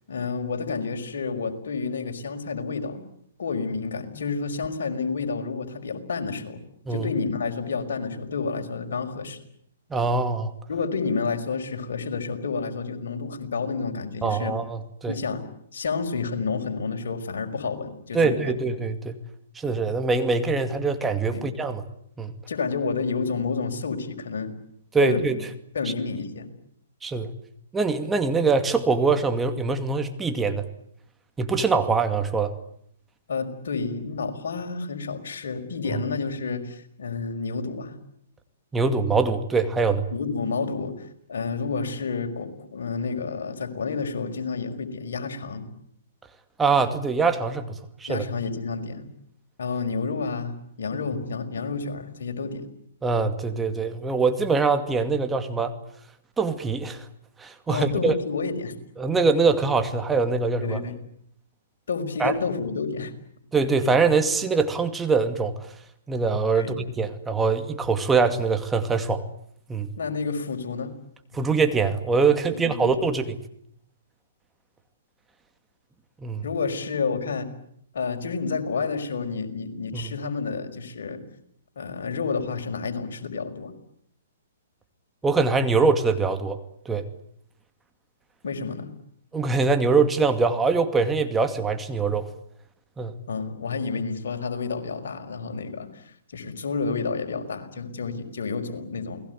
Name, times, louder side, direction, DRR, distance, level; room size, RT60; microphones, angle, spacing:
voice 1, 0.1-3.0 3.4-6.6 6.9-9.4 10.7-14.6 15.1-15.4 15.7-18.6 21.3-21.5 22.5-24.5 25.0-25.4 25.7-26.5 33.3-38.0 40.1-40.9 41.3-45.7 48.1-49.1 49.6-52.6 57.7-58.8 60.6-61.0 61.9-63.1 66.6-66.8 70.0-70.9 72.5-72.9 76.4-77.5 77.9-81.2 81.8-83.7 88.4-88.9 93.3-99.2, left 4 dB, 65° left, 5 dB, 5.3 m, -30 dB
voice 2, 9.9-10.5 14.2-15.2 18.1-19.2 19.6-21.8 22.2-22.3 24.9-25.4 27.0-27.3 27.7-30.6 31.4-32.5 35.9-36.0 38.7-40.0 46.6-48.2 53.0-55.7 56.4-57.0 57.4-58.1 59.0-60.8 62.2-62.3 63.5-65.5 66.1-69.2 69.7-69.9 71.3-73.4 76.2-76.5 79.9-80.1 85.2-86.6 86.9-87.0 89.3-92.3 93.0-93.1, right 4 dB, 10° right, 7 dB, 2.4 m, -23 dB
29.0 x 20.5 x 9.4 m, 0.70 s
hypercardioid pair, 125°, 0 cm